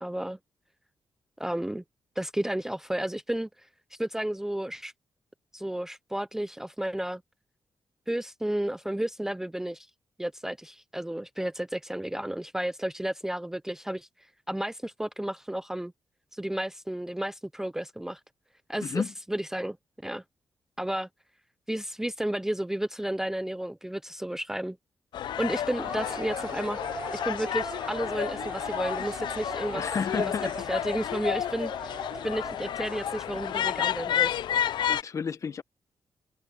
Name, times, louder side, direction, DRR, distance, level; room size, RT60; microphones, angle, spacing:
voice 1, 0.0-0.4 1.4-1.8 2.2-3.7 4.0-4.9 5.5-7.2 8.1-9.9 10.2-14.1 14.5-15.9 16.3-18.2 18.7-19.8 20.0-20.2 20.8-21.1 21.7-24.8 25.4-26.8 27.1-29.9 30.1-32.0 32.2-34.3, right 1 dB, 5° right, 0.5 m, -32 dB
voice 2, 18.8-19.1 29.7-30.5 34.9-35.6, left 6 dB, 45° left, 1.1 m, -31 dB
sound 1, 25.1-35.0, left 10 dB, 80° left, 0.5 m, -31 dB
sound 2, 25.7-33.4, right 4 dB, 30° right, 1.1 m, -41 dB
wide cardioid pair, 135°, 8 cm